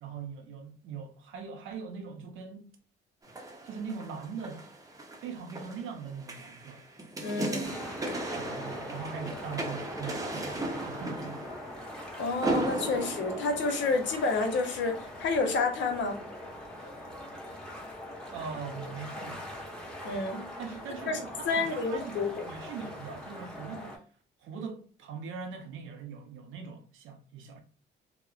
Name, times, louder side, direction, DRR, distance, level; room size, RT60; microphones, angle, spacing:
voice 1, 0.0-2.7 3.6-4.7 5.2-6.8 8.3-11.4 18.3-19.5 20.6-23.9 24.4-27.6, right 5 dB, 85° right, 0.7 m, -41 dB
sound 1, 3.2-14.5 15.0-15.1, right 2 dB, 15° right, 0.6 m, -37 dB
voice 2, 7.2-7.8 12.2-16.2 20.0-20.4 21.1-21.2 21.4-22.5, left 3 dB, 65° left, 0.7 m, -29 dB
sound 2, 7.6-24.0, left 1 dB, 5° left, 0.9 m, -42 dB
2.8 x 2.1 x 2.4 m
cardioid pair, 90°, 20 cm